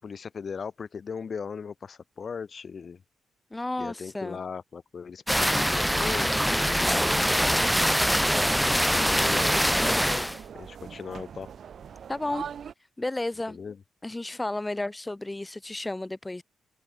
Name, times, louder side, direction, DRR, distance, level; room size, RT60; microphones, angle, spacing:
voice 1, 0.0-3.0 3.8-8.0 8.9-10.3 10.5-11.5 13.5-13.8, left 6 dB, 55° left, 7.5 m, -38 dB
voice 2, 3.5-4.4 12.1-12.5 13.0-13.6 14.0-16.4, left 2 dB, 20° left, 3.4 m, -32 dB
sound 1, 5.3-10.4, equal, ahead, 0.3 m, -23 dB
sound 2, 7.4-12.7, right 7 dB, 65° right, 2.6 m, -42 dB
hypercardioid pair, 45°, 0 cm